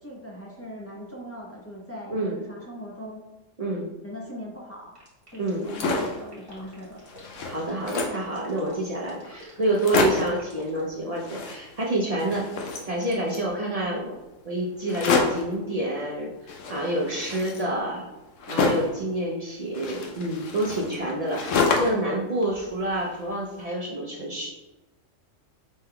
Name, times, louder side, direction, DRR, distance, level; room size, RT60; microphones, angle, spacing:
voice 1, 0.0-3.3 4.0-5.0 5.3-7.0, equal, 15° left, -4 dB, 0.6 m, -40 dB
DB Animal, 4.9-10.8, equal, 25° right, 1.2 m, -49 dB
sound 1, 5.5-6.2 6.7-6.8 7.0-8.3 8.9-9.0 9.2-9.3 9.6-10.4 11.1-11.9 12.2-13.5 14.9-15.5 16.5-19.0 19.7-22.1 22.4-23.3, left 4 dB, 80° left, 1.0 m, -28 dB
voice 2, 7.5-14.1 14.4-18.1 18.5-24.5, right 1 dB, 50° right, -3 dB, 0.4 m, -28 dB
5.2 x 3.5 x 2.2 m, 1.0 s
omnidirectional pair, 1.3 m